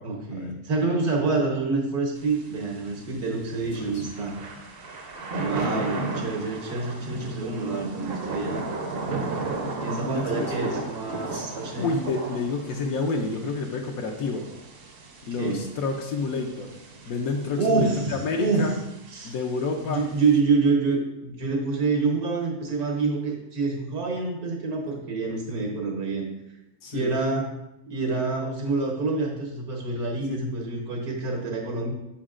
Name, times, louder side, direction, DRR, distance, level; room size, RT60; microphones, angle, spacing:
voice 1, 0.0-4.4 5.4-8.6 9.8-11.9 15.4-15.6 17.6-18.7 19.1-19.3 19.9-26.3 26.9-27.5 27.9-31.9, right 4 dB, 80° right, 0 dB, 1.7 m, -27 dB
Thunder / Rain, 2.2-20.4, right 3 dB, 50° right, 0.7 m, -36 dB
voice 2, 5.7-6.1 10.0-10.8 11.3-11.5 11.8-14.5 15.3-16.7 17.1-18.7 19.2-20.1 26.8-27.1, left 4 dB, 75° left, 2 dB, 1.1 m, -29 dB
7.2 x 5.4 x 2.5 m, 0.88 s
omnidirectional pair, 1.6 m